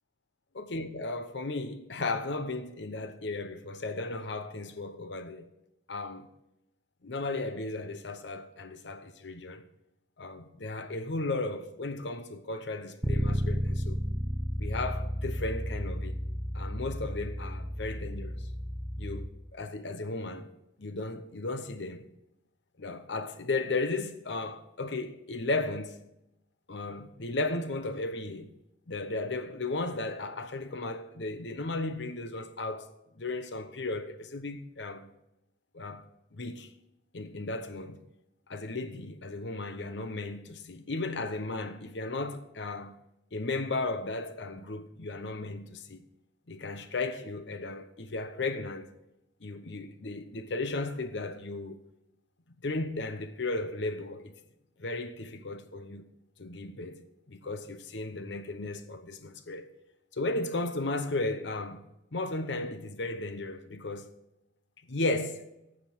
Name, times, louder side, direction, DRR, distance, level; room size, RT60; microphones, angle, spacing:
voice 1, 0.5-5.5 5.9-6.3 7.0-9.6 10.2-14.0 14.6-16.2 16.5-18.4 19.0-20.5 20.8-22.1 22.8-26.0 26.7-28.5 28.9-32.9 33.2-35.1 35.7-36.0 36.3-36.7 37.1-38.0 38.5-43.0 43.3-46.0 46.5-48.9 49.4-51.8 52.6-54.4 54.8-56.1 56.4-57.0 57.3-59.7 60.1-61.8 62.1-64.1 64.9-65.5, left 2 dB, 65° left, 0.9 m, -35 dB
Bass guitar, 13.0-19.3, equal, 15° right, 0.8 m, -32 dB
15.0 x 5.2 x 6.0 m
head